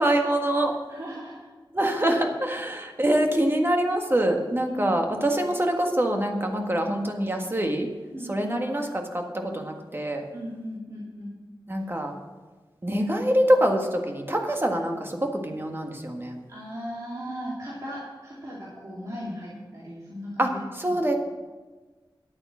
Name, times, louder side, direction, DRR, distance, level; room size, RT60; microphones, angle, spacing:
voice 1, 0.0-0.7 1.7-7.9 8.3-10.2 11.7-12.1 12.8-16.4 20.4-21.1, right 1 dB, 25° right, 3 dB, 1.6 m, -25 dB
voice 2, 0.9-1.4 4.6-5.0 8.1-8.5 10.3-11.3 16.5-20.5 20.9-21.0, equal, 45° right, -7 dB, 2.5 m, -37 dB
11.0 x 8.7 x 6.2 m, 1.3 s
wide cardioid pair, 85°, 8 cm